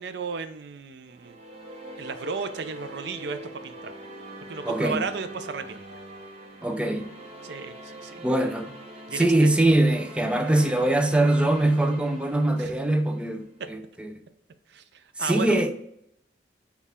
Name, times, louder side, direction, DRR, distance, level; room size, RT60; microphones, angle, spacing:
voice 1, 0.0-1.4 2.0-3.9 4.5-5.8 7.4-8.2 9.1-9.3 12.6-12.7 13.6-13.7 14.7-15.6, right 5 dB, 65° right, 0.4 m, -34 dB
sound 1, 1.1-13.4, right 1 dB, 35° right, 0.8 m, -43 dB
voice 2, 4.7-5.1 6.6-7.1 8.2-8.8 9.1-14.2 15.2-15.7, right 1 dB, 5° right, 0.3 m, -23 dB
6.4 x 2.4 x 3.5 m
head